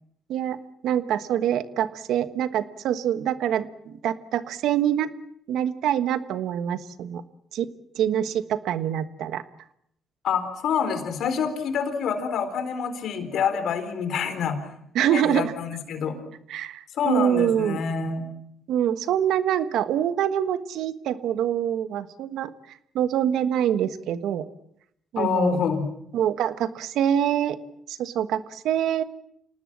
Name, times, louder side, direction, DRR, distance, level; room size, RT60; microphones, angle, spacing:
voice 1, 0.8-5.1 5.5-7.2 7.5-7.7 7.9-9.4 14.9-15.5 16.5-17.8 18.7-22.5 22.9-24.4 25.1-25.6 26.1-27.6 27.9-29.0, right 10 dB, 80° right, 13 dB, 1.3 m, -25 dB
voice 2, 10.2-14.7 15.1-16.2 16.9-18.3 25.2-25.9, left 6 dB, 70° left, 9 dB, 4.0 m, -26 dB
27.0 x 19.0 x 7.5 m, 0.73 s
cardioid pair, 90°, 0 cm